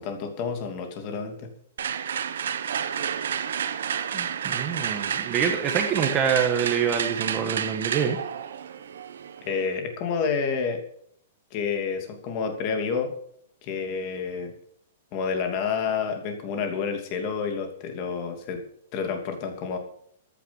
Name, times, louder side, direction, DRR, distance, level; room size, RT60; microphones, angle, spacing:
voice 1, 0.0-1.5 9.4-10.8 11.5-13.1 13.6-14.5 15.1-18.6 18.9-19.8, left 5 dB, 25° left, 5 dB, 2.8 m, -29 dB
sound 1, 1.8-9.7, right 8 dB, 70° right, 1.3 m, -30 dB
voice 2, 4.1-8.2, right 7 dB, 15° right, 5 dB, 1.4 m, -26 dB
15.0 x 10.0 x 5.5 m, 0.64 s
hypercardioid pair, 175°, 0 cm